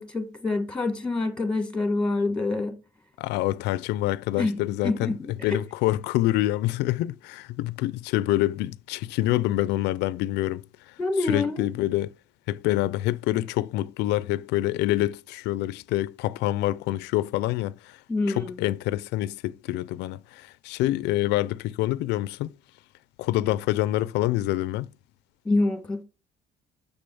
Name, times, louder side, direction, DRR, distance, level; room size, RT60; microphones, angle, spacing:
voice 1, 0.0-2.7 4.4-4.5 4.8-5.6 11.0-11.7 18.1-18.5 25.4-26.0, left 2 dB, 5° left, 1.6 m, -26 dB
voice 2, 3.2-10.6 11.2-12.1 12.5-18.0 18.3-22.5 23.2-24.9, left 15 dB, 85° left, 0.4 m, -26 dB
6.9 x 5.7 x 6.9 m
cardioid pair, 110°, 17 cm